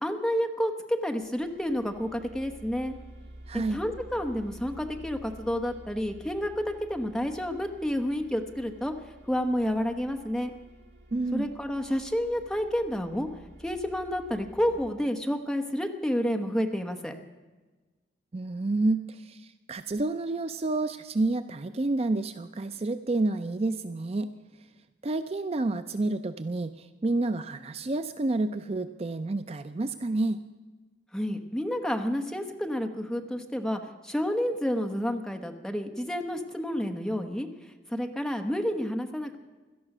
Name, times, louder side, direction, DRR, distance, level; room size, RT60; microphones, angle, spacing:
voice 1, 0.0-2.9 3.5-8.9 9.3-10.5 11.3-13.3 13.6-17.1 31.1-37.5 37.9-39.4, equal, 5° left, 4 dB, 1.1 m, -30 dB
sound 1, 1.2-14.9, right 1 dB, 75° right, 3.5 m, -50 dB
voice 2, 3.5-3.8 11.1-11.5 18.3-24.3 25.0-30.4, right 2 dB, 35° right, 11 dB, 0.5 m, -29 dB
17.0 x 12.5 x 6.1 m, 1.2 s
head